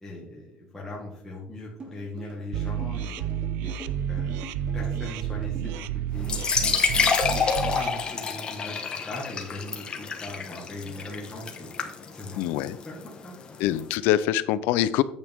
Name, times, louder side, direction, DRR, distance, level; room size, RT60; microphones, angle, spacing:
voice 1, 0.0-3.2 3.6-3.7 4.1-4.5 4.7-5.8 6.1-6.8 7.3-7.4 7.7-8.7 9.1-12.4 12.8-13.4, left 1 dB, 10° left, -5 dB, 2.0 m, -40 dB
sound 1, 1.8-5.8, right 3 dB, 30° right, 2.6 m, -43 dB
sound 2, 2.5-7.9, right 9 dB, 80° right, 0.5 m, -30 dB
sound 3, 6.2-13.8, left 5 dB, 30° left, 1.3 m, -28 dB
voice 2, 12.3-12.8 13.6-15.0, left 13 dB, 85° left, 15 dB, 0.6 m, -24 dB
8.9 x 8.2 x 3.6 m, 0.67 s
cardioid pair, 145°, 3 cm